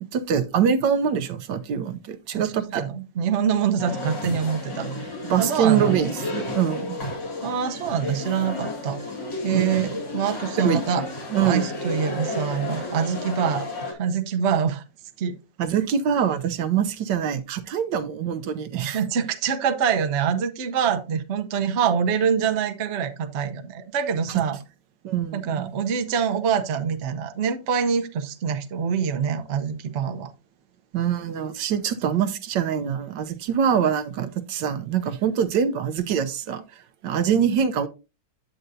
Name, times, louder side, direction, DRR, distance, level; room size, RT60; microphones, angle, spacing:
voice 1, 0.0-2.8 5.2-6.9 9.5-9.9 10.6-10.8 11.3-11.6 15.6-19.0 24.3-24.4 25.0-25.7 30.9-37.9, right 8 dB, 75° right, 1.3 m, -24 dB
voice 2, 2.3-5.1 5.4-6.0 7.4-9.0 9.4-11.0 11.4-14.8 15.2-15.4 18.7-24.6 25.3-30.3, right 7 dB, 50° right, 0.9 m, -25 dB
sound 1, 3.8-13.9, left 2 dB, 70° left, 2.9 m, -32 dB
8.8 x 7.9 x 2.7 m
omnidirectional pair, 2.0 m